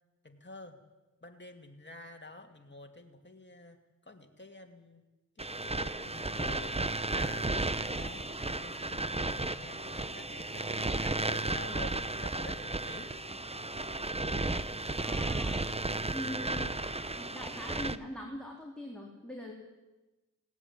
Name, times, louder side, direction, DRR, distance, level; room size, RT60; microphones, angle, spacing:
voice 1, 0.2-0.8 1.2-5.0 5.4-13.1 16.4-16.8, left 2 dB, 35° left, 4 dB, 2.5 m, -49 dB
sound 1, 5.4-18.0, right 2 dB, 20° right, 0.9 m, -34 dB
voice 2, 15.0-15.6 16.1-16.6 17.2-19.5, equal, 5° left, -2 dB, 4.1 m, -42 dB
19.0 x 17.0 x 10.0 m, 1.1 s
wide cardioid pair, 70°, 32 cm